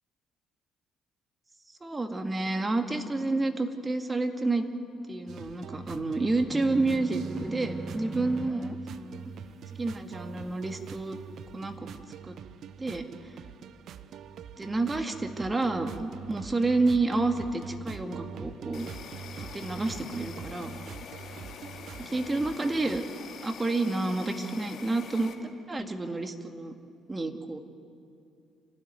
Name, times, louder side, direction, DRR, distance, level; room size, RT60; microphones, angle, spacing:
voice 1, 1.8-4.7 5.1-9.3 9.8-11.2 11.5-11.9 12.2-12.3 12.8-13.3 14.6-18.9 19.4-20.7 22.0-23.0 23.4-26.7 27.1-27.6, right 2 dB, 25° right, 6 dB, 2.1 m, -29 dB
sound 1, 5.3-23.0, right 7 dB, 65° right, 0.7 m, -44 dB
sound 2, 6.5-8.8, right 2 dB, 5° right, 0.9 m, -39 dB
Insect, 18.7-25.3, left 6 dB, 55° left, 2.3 m, -45 dB
28.5 x 12.5 x 9.4 m, 2.5 s
hypercardioid pair, 50°, 0 cm